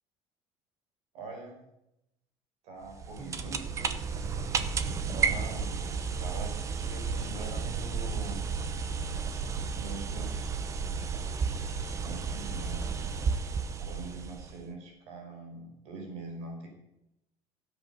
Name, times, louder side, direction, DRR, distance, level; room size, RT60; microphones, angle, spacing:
voice 1, 1.1-1.6 2.6-3.6 5.1-8.4 9.7-10.6 12.0-13.1 13.8-16.7, right 2 dB, 60° right, 2 dB, 5.1 m, -43 dB
sound 1, 2.9-14.7, right 5 dB, 25° right, 1.0 m, -33 dB
16.0 x 8.3 x 6.9 m, 0.85 s
cardioid pair, 170°, 12 cm